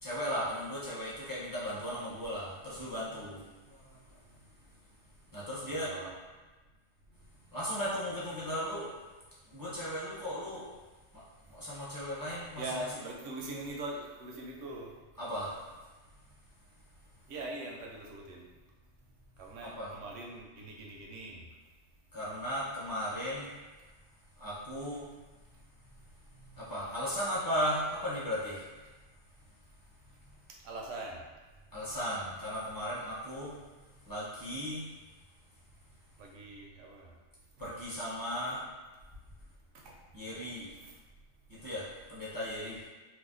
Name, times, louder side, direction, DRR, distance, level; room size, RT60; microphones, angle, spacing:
voice 1, 0.0-4.0 5.3-5.9 7.5-8.9 9.5-10.7 11.1-11.2 11.5-12.6 15.2-15.6 19.6-19.9 22.1-23.5 24.4-25.1 26.4-28.6 31.7-33.5 34.1-34.9 37.6-38.6 40.1-40.7 41.5-42.8, equal, 20° left, -10 dB, 0.9 m, -36 dB
voice 2, 5.7-6.1 12.5-14.9 17.3-18.4 19.4-21.4 30.6-31.2 36.2-37.1 39.7-39.9 40.8-40.9, right 2 dB, 70° right, 0 dB, 0.9 m, -42 dB
2.6 x 2.2 x 3.8 m, 1.2 s
omnidirectional pair, 1.3 m